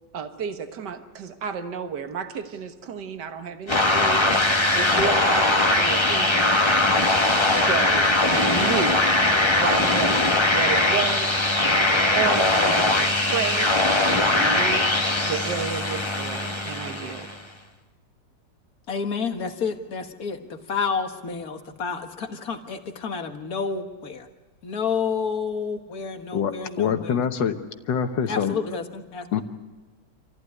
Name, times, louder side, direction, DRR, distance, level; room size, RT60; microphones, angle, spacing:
voice 1, 0.1-4.3 4.7-9.1 9.5-13.7 14.1-14.9 15.2-17.3, right 6 dB, 70° right, 7 dB, 1.9 m, -32 dB
sound 1, 3.7-17.4, left 2 dB, 15° left, 1.2 m, -21 dB
voice 2, 18.9-24.3 24.6-27.2 28.3-29.4, left 5 dB, 55° left, 6 dB, 1.9 m, -30 dB
voice 3, 26.3-27.6 27.9-28.6 29.3-29.4, left 7 dB, 85° left, 8 dB, 1.9 m, -24 dB
27.0 x 15.0 x 9.7 m, 1.3 s
omnidirectional pair, 1.9 m